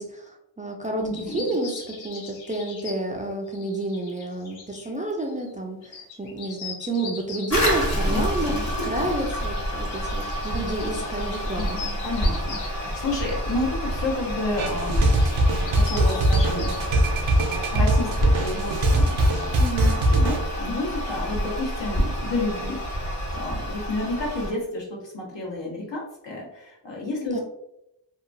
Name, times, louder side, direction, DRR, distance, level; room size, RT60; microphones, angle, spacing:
voice 1, 0.0-1.1 1.3-8.5 8.8-11.8 19.6-20.0 27.2-27.4, right 2 dB, 20° right, 1 dB, 0.4 m, -30 dB
voice 2, 0.9-1.6 8.0-8.7 11.5-15.4 15.7-16.7 17.7-27.4, left 2 dB, 65° left, -2 dB, 1.1 m, -31 dB
sound 1, 1.1-3.2 3.5-4.9 5.2-5.5 5.8-8.1 8.8-12.7 13.3-13.8 14.2-14.3 14.7-17.0, left 4 dB, 85° left, 0.7 m, -41 dB
Toilet flush, 7.5-24.5, equal, 35° left, 1.3 m, -28 dB
sound 2, 14.6-20.4, right 1 dB, 80° right, 0.6 m, -22 dB
2.8 x 2.3 x 2.6 m, 0.85 s
cardioid pair, 45°, 46 cm